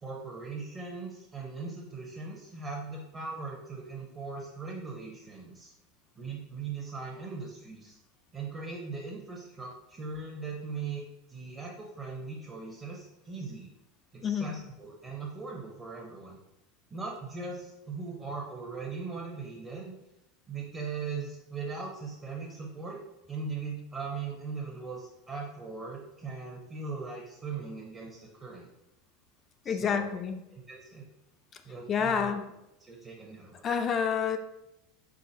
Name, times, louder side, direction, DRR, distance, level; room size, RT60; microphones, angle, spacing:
voice 1, 0.0-5.7 6.2-8.0 8.3-11.0 11.3-13.7 14.1-16.4 16.9-19.9 20.5-23.0 23.3-28.7 29.6-30.2 30.5-31.0 31.6-32.3 32.8-33.6, right 4 dB, 25° right, -2 dB, 0.9 m, -39 dB
voice 2, 29.7-30.4 31.9-32.5 33.6-34.4, left 7 dB, 35° left, 7 dB, 0.4 m, -28 dB
3.9 x 3.7 x 2.8 m, 0.87 s
hypercardioid pair, 95°, 0 cm